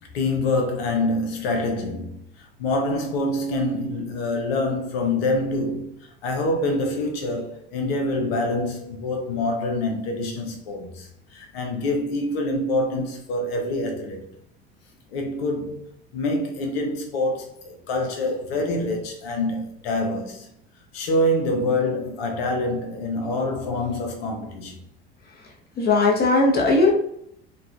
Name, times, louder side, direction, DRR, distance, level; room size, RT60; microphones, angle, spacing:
voice 1, 0.0-14.3 15.1-20.5 20.9-24.8, left 1 dB, 70° left, 0.8 m, -26 dB
voice 2, 25.8-26.9, left 3 dB, 30° left, 1.0 m, -18 dB
3.9 x 2.3 x 2.3 m
hypercardioid pair, 65°, 31 cm